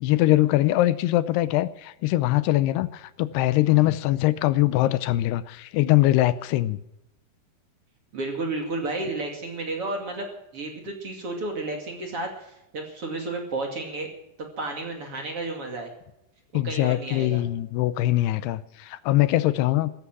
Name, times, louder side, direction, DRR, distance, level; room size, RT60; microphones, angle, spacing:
voice 1, 0.0-6.8 16.5-19.9, left 16 dB, 85° left, 15 dB, 2.7 m, -22 dB
voice 2, 8.1-10.3 10.5-14.1 14.4-15.9 16.6-17.4, right 2 dB, 40° right, 2 dB, 2.8 m, -32 dB
16.0 x 14.5 x 6.1 m, 0.87 s
omnidirectional pair, 4.7 m